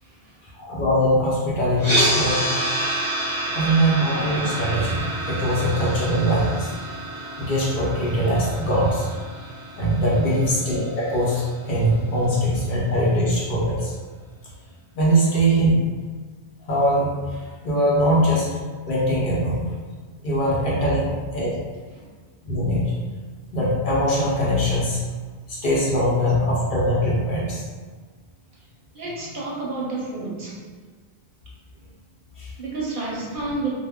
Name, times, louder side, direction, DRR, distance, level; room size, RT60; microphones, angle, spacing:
voice 1, 0.0-0.4 3.4-3.9 10.0-10.4 18.0-18.1 21.9-22.0 28.9-30.6 32.6-33.7, right 3 dB, 60° right, -5 dB, 0.7 m, -31 dB
voice 2, 0.5-2.6 3.5-6.7 7.4-9.1 9.8-13.9 15.0-15.7 16.7-18.5 18.9-19.7 20.2-21.6 22.4-23.0 23.5-25.0 25.5-27.6 32.4-32.5, equal, 60° left, -6 dB, 0.7 m, -22 dB
sound 1, 1.8-11.9, right 1 dB, 20° left, 0.8 m, -28 dB
2.1 x 2.0 x 3.5 m, 1.5 s
omnidirectional pair, 1.1 m